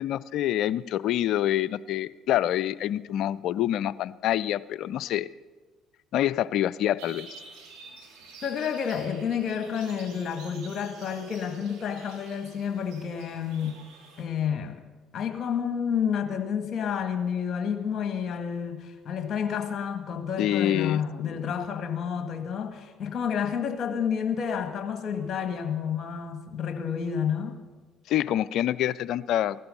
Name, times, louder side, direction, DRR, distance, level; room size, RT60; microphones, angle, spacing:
voice 1, 0.0-5.3 6.1-7.3 20.4-21.5 28.1-29.6, left 12 dB, 65° left, 18 dB, 0.4 m, -26 dB
sound 1, 7.0-14.2, right 4 dB, 75° right, 3.0 m, -48 dB
voice 2, 8.4-13.8 14.2-14.8 15.1-27.6, left 7 dB, 50° left, 7 dB, 1.7 m, -30 dB
16.0 x 12.0 x 5.4 m, 1.3 s
hypercardioid pair, 60°, 0 cm